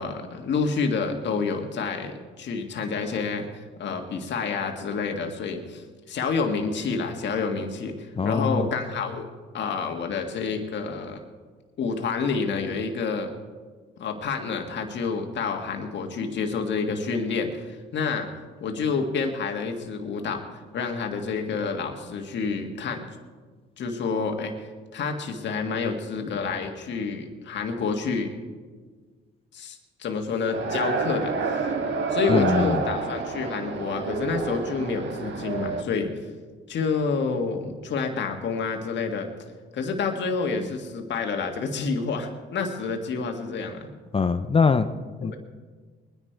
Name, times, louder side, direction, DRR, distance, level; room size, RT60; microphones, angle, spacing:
voice 1, 0.0-9.3 9.5-11.2 11.8-13.3 14.0-18.3 18.6-23.1 23.8-24.5 24.9-28.3 29.5-31.6 32.1-36.1 36.7-39.3 39.7-43.9 45.2-45.4, left 4 dB, 65° left, 3 dB, 1.7 m, -28 dB
voice 2, 8.2-8.7 32.3-32.8 44.1-44.9 45.2-45.4, left 5 dB, 30° left, 11 dB, 0.6 m, -22 dB
sound 1, 30.5-35.8, right 4 dB, 65° right, 1.6 m, -28 dB
21.0 x 10.5 x 4.6 m, 1.5 s
cardioid pair, 90°, 20 cm